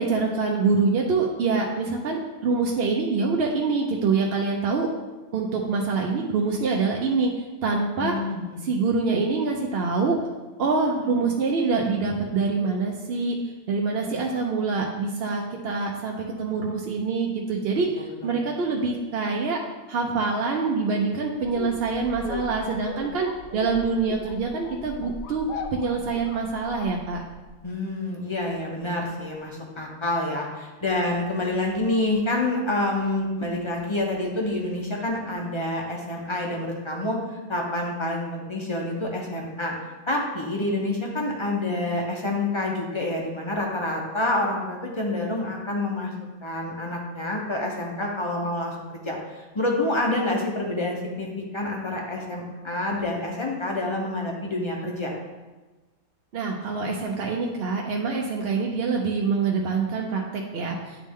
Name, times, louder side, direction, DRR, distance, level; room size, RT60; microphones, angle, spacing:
voice 1, 0.0-4.9 5.3-8.1 8.6-10.2 10.6-13.4 13.7-19.6 19.9-27.2 41.1-41.2 56.3-61.1, right 4 dB, 60° right, 0 dB, 0.7 m, -25 dB
voice 2, 8.0-8.6 18.2-18.4 27.6-39.7 40.1-46.1 46.4-51.3 51.5-55.1, left 2 dB, 25° left, -1 dB, 0.7 m, -27 dB
sound 1, 21.4-27.6, left 4 dB, 75° left, 1.0 m, -38 dB
9.1 x 3.1 x 3.6 m, 1.2 s
omnidirectional pair, 1.5 m